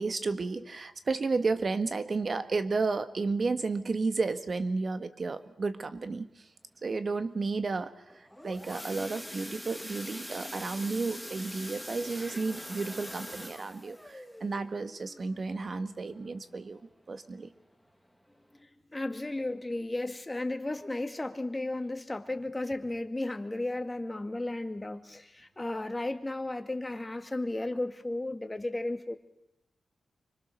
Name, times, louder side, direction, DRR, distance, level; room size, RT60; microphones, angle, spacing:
voice 1, 0.0-6.3 6.8-16.8 17.1-17.5, right 4 dB, 50° right, 10 dB, 1.6 m, -32 dB
sound 1, 8.1-16.8 17.2-17.4 17.7-17.8 18.3-18.4, equal, ahead, 1.9 m, -43 dB
voice 2, 18.6-29.2, left 2 dB, 20° left, 7 dB, 2.2 m, -34 dB
26.0 x 24.5 x 6.6 m, 0.83 s
cardioid pair, 65°, 0 cm